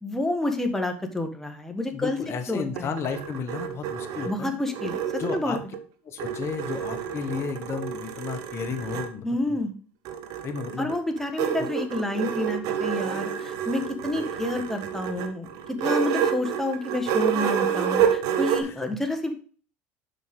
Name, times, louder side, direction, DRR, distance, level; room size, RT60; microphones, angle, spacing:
voice 1, 0.0-2.2 2.5-2.9 4.2-5.6 9.2-9.7 10.8-15.5 15.8-19.3, left 1 dB, 5° left, 4 dB, 1.6 m, -29 dB
voice 2, 1.9-4.5 5.2-5.6 6.0-9.6 10.4-10.9 11.6-11.7 18.6-18.8, left 6 dB, 40° left, 6 dB, 1.3 m, -33 dB
sound 1, 2.5-5.8 6.2-9.1 10.1-18.6, right 8 dB, 65° right, 1.1 m, -29 dB
7.4 x 5.6 x 3.7 m, 0.42 s
supercardioid pair, 95°, 7 cm